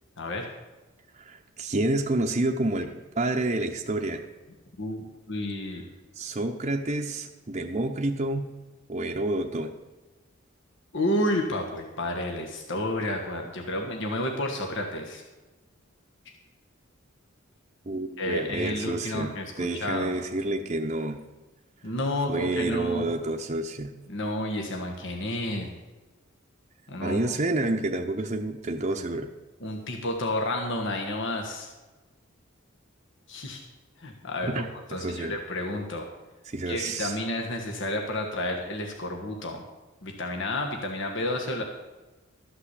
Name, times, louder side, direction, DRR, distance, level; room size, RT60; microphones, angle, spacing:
voice 1, 1.1-4.3 6.2-8.5 8.9-9.7 17.9-21.2 22.3-23.9 27.0-29.3 34.4-35.4 36.5-37.2, right 2 dB, 35° right, 3 dB, 0.7 m, -29 dB
voice 2, 4.8-5.9 10.9-15.2 18.2-20.1 21.8-23.0 24.1-25.8 26.9-27.2 29.6-31.7 33.3-33.6 34.0-36.1 36.7-39.6 40.0-41.6, left 1 dB, 65° left, 2 dB, 1.4 m, -31 dB
13.0 x 5.9 x 8.2 m, 1.2 s
head